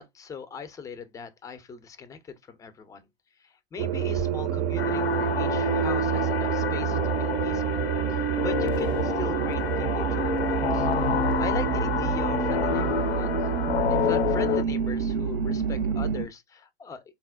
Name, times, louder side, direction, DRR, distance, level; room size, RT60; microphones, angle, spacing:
voice 1, 0.0-3.1 3.4-10.9 11.2-13.3 13.7-17.0, left 5 dB, 10° left, 0.4 m, -39 dB
sound 1, 3.8-16.3, right 9 dB, 45° right, 0.5 m, -27 dB
sound 2, 4.8-14.6, left 9 dB, 90° left, 0.5 m, -28 dB
4.1 x 2.1 x 2.3 m
hypercardioid pair, 105°, 31 cm